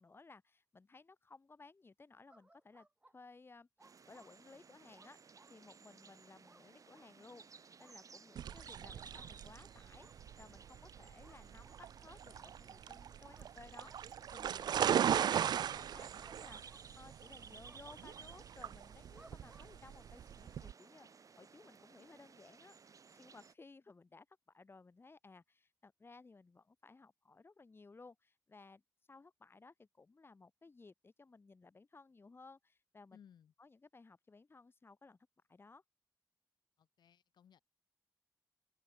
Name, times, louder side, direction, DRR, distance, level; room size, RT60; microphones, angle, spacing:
voice 1, 0.0-2.9 3.1-3.7 4.1-28.8 29.1-33.2 33.6-35.2 35.5-35.8, left 3 dB, 30° left, 5.3 m, -59 dB
sound 1, 2.3-3.1 3.8-4.3 5.0-5.6 6.5-6.6 6.9-7.1 7.8-8.0 8.5-8.7 9.1-9.3 10.0-10.2 11.2-11.8 12.4-12.5 13.3-13.5 13.9-14.1 14.7-14.9 16.2-16.4 16.6-17.2 17.6-17.8 19.2-19.7, right 2 dB, 15° right, 3.1 m, -63 dB
sound 2, 3.8-23.5, right 5 dB, 50° right, 5.4 m, -59 dB
sound 3, 8.4-20.7, right 9 dB, 75° right, 0.4 m, -38 dB
voice 2, 33.1-33.5 36.8-37.6, left 8 dB, 80° left, 4.1 m, -63 dB
cardioid pair, 100°, 7 cm